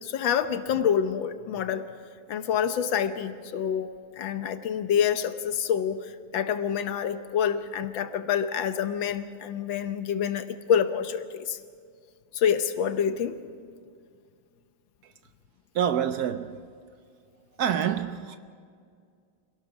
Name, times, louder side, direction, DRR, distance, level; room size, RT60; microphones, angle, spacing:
voice 1, 0.0-1.9 2.3-3.9 4.2-11.6 12.3-13.4, left 8 dB, 85° left, 1.7 m, -27 dB
voice 2, 15.7-16.7 17.6-18.4, right 9 dB, 65° right, 1.0 m, -27 dB
25.5 x 17.5 x 5.9 m
omnidirectional pair, 2.1 m